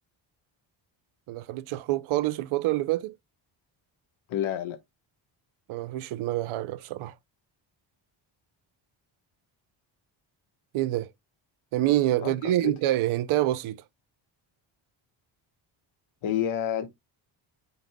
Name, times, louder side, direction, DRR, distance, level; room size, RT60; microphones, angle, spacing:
voice 1, 1.3-3.2 5.7-7.1 10.7-11.1 11.7-13.8, right 14 dB, 80° right, 0.7 m, -26 dB
voice 2, 4.3-4.8 12.2-12.3 12.6-12.7 16.2-16.9, left 10 dB, 80° left, 1.3 m, -28 dB
9.5 x 5.3 x 2.2 m
wide cardioid pair, 175°, 48 cm